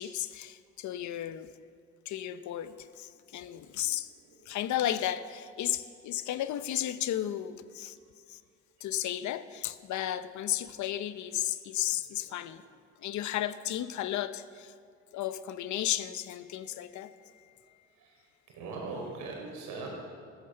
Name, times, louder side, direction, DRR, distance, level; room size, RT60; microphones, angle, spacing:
voice 1, 0.0-1.5 2.0-4.1 4.5-8.0 8.3-8.4 8.8-12.6 13.0-14.7 15.1-17.4, left 12 dB, 70° left, 13 dB, 0.8 m, -34 dB
voice 2, 3.3-3.8 4.2-4.4 12.2-12.3 16.6-16.9 17.2-17.3 17.9-19.9, right 3 dB, 85° right, 0 dB, 4.9 m, -42 dB
15.0 x 14.5 x 6.6 m, 2.2 s
cardioid pair, 85°, 30 cm